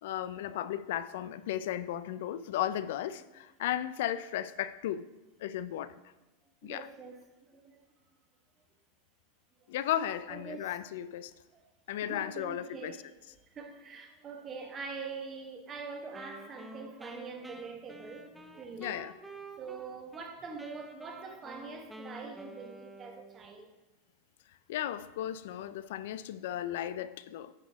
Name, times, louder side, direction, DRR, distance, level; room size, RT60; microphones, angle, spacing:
voice 1, 0.0-5.0 5.4-5.9 6.6-6.9 9.7-11.3 11.9-13.0 18.8-19.1 24.7-27.5, left 11 dB, 75° left, 0.3 m, -35 dB
voice 2, 6.6-7.8 9.8-10.8 11.5-11.6 12.0-13.1 13.5-19.0 19.5-23.7, right 4 dB, 30° right, 1.2 m, -44 dB
Wind instrument woodwind instrument, 16.1-20.3 20.6-23.5, right 2 dB, 10° right, 0.6 m, -49 dB
9.7 x 4.0 x 4.6 m
supercardioid pair, 120°, 0 cm